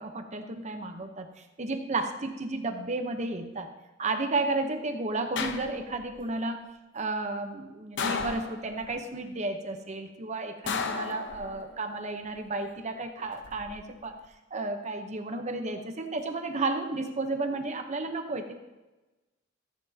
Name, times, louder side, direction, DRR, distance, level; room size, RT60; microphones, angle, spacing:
voice 1, 0.0-3.7 4.0-6.7 6.9-14.1 14.5-18.5, right 2 dB, 35° right, 6 dB, 0.9 m, -32 dB
sound 1, 5.4-6.1 8.0-8.9 10.7-11.8 13.2-13.7, left 5 dB, 65° left, 0.7 m, -33 dB
14.0 x 7.8 x 2.8 m, 1.1 s
head